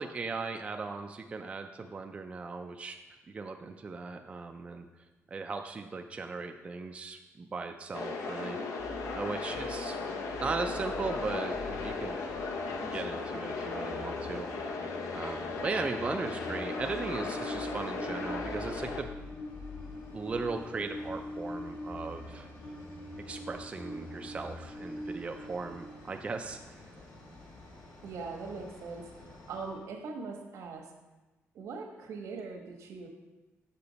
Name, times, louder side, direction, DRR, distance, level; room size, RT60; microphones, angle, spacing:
voice 1, 0.0-3.0 3.3-4.9 5.3-8.6 9.1-10.0 10.4-12.2 12.8-19.1 20.1-22.5 23.3-26.8, right 4 dB, 25° right, 5 dB, 0.3 m, -37 dB
sound 1, 7.9-19.0, left 4 dB, 85° left, 0.7 m, -36 dB
sound 2, 8.8-24.7, left 2 dB, 25° left, 1.0 m, -49 dB
Train, 10.3-29.8, left 1 dB, 65° left, 2.0 m, -45 dB
voice 2, 28.0-30.9 31.5-33.1, right 4 dB, 80° right, 2 dB, 1.2 m, -41 dB
6.8 x 5.8 x 4.0 m, 1.1 s
cardioid pair, 155°, 5 cm